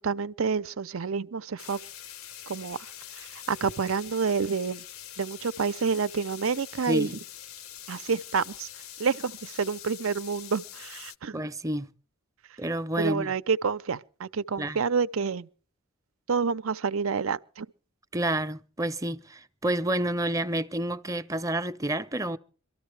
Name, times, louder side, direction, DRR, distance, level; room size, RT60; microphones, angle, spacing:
voice 1, 0.0-1.8 2.5-2.8 3.2-4.8 5.2-7.1 7.9-8.7 9.0-11.4 13.0-15.5 16.3-17.7, right 5 dB, 75° right, 0.6 m, -28 dB
sound 1, 1.6-11.2, left 11 dB, 85° left, 0.8 m, -44 dB
voice 2, 6.9-7.2 11.3-11.9 12.6-13.3 14.6-14.8 18.1-22.4, right 1 dB, 15° right, 0.7 m, -29 dB
23.5 x 13.5 x 3.3 m
head